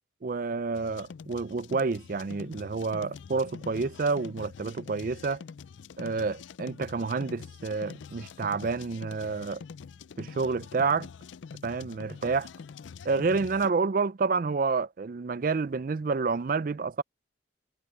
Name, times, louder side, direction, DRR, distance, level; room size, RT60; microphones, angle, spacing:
voice 1, 0.2-5.4 6.0-9.6 10.2-11.1 11.6-12.5 13.0-17.0, right 4 dB, 45° right, 0.4 m, -29 dB
sound 1, 0.7-13.7, left 6 dB, 80° left, 0.4 m, -45 dB
head